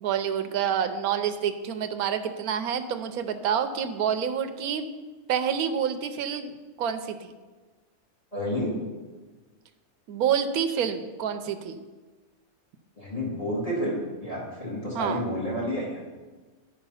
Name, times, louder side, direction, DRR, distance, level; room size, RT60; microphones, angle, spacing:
voice 1, 0.0-4.9 5.3-7.3 10.1-11.8 14.9-15.2, right 8 dB, 90° right, 9 dB, 1.1 m, -28 dB
voice 2, 8.3-8.7 13.0-16.0, equal, 25° left, -5 dB, 2.2 m, -30 dB
9.8 x 4.7 x 5.5 m, 1.3 s
omnidirectional pair, 1.5 m